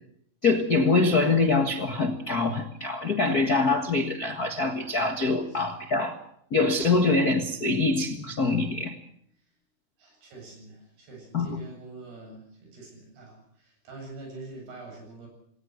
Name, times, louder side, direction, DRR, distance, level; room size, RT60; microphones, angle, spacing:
voice 1, 0.4-6.1 6.5-8.9 11.3-11.5, left 3 dB, 75° left, 6 dB, 0.8 m, -24 dB
voice 2, 10.0-15.3, right 3 dB, 80° right, 1 dB, 10.0 m, -45 dB
19.5 x 19.0 x 7.9 m, 0.68 s
omnidirectional pair, 4.5 m